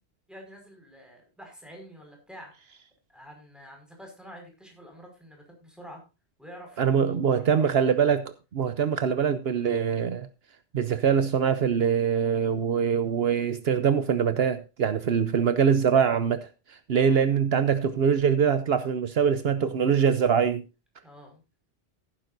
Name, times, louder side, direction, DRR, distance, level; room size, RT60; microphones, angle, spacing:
voice 1, 0.3-2.7 3.1-6.0 6.4-8.0 16.9-17.2 21.0-21.4, equal, ahead, 5.4 m, -47 dB
voice 2, 6.8-8.2 8.5-10.3 10.7-20.6, right 7 dB, 70° right, 1.0 m, -23 dB
16.0 x 10.0 x 2.6 m
omnidirectional pair, 1.1 m